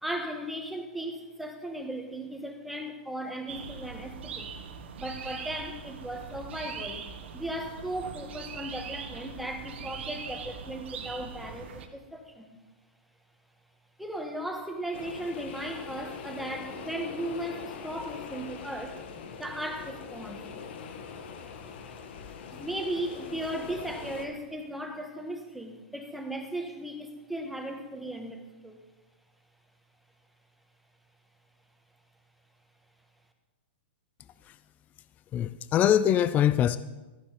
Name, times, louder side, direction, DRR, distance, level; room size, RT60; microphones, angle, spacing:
voice 1, 0.0-4.5 5.0-7.1 7.3-12.6 14.0-19.0 19.4-20.4 22.5-28.8, right 1 dB, ahead, 4 dB, 1.6 m, -36 dB
sound 1, 3.5-11.9, right 6 dB, 70° right, 1.6 m, -41 dB
sound 2, 14.9-24.3, left 6 dB, 65° left, 1.8 m, -42 dB
voice 2, 35.3-36.8, left 10 dB, 25° left, 14 dB, 0.5 m, -23 dB
14.5 x 10.0 x 5.1 m, 1.2 s
hypercardioid pair, 135°, 6 cm